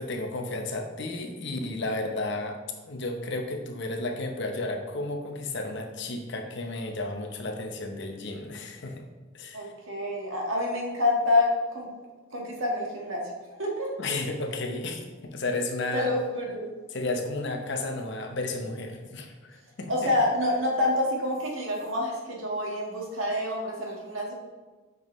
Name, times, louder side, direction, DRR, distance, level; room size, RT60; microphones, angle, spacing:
voice 1, 0.0-2.6 2.9-9.0 9.3-9.7 14.0-16.1 16.9-20.1, left 2 dB, 55° left, 4 dB, 0.9 m, -33 dB
voice 2, 9.5-11.5 11.7-11.9 12.3-13.3 13.6-14.2 15.9-16.7 19.9-24.3, left 2 dB, 70° right, -1 dB, 1.7 m, -27 dB
7.8 x 5.4 x 3.1 m, 1.3 s
head